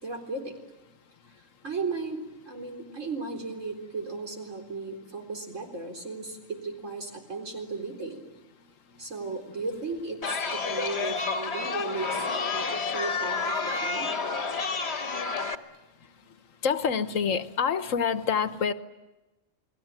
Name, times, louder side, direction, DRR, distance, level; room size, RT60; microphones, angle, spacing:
voice 1, 0.0-0.5 1.6-8.2 9.0-14.1, right 3 dB, 75° right, 2 dB, 4.4 m, -36 dB
Chatter, 10.2-15.5, left 4 dB, 55° left, 1.5 m, -30 dB
voice 2, 16.6-18.7, left 6 dB, 85° left, 11 dB, 1.5 m, -26 dB
30.0 x 20.5 x 9.0 m, 1.1 s
omnidirectional pair, 1.3 m